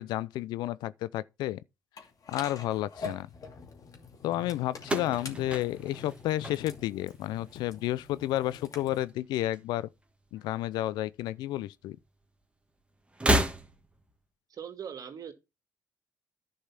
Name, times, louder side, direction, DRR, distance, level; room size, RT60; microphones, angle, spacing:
voice 1, 0.0-1.6 2.3-3.3 4.2-9.9 10.3-12.0, left 14 dB, 85° left, 0.5 m, -31 dB
sound 1, 2.0-9.0, left 4 dB, 55° left, 2.5 m, -45 dB
sound 2, 4.8-7.1 7.4-8.0 9.1-10.1 10.4-10.5 11.6-11.7 13.1-14.1, right 1 dB, 15° right, 2.0 m, -31 dB
voice 2, 14.5-15.3, right 8 dB, 60° right, 2.3 m, -40 dB
10.5 x 5.5 x 5.9 m
supercardioid pair, 55°, 7 cm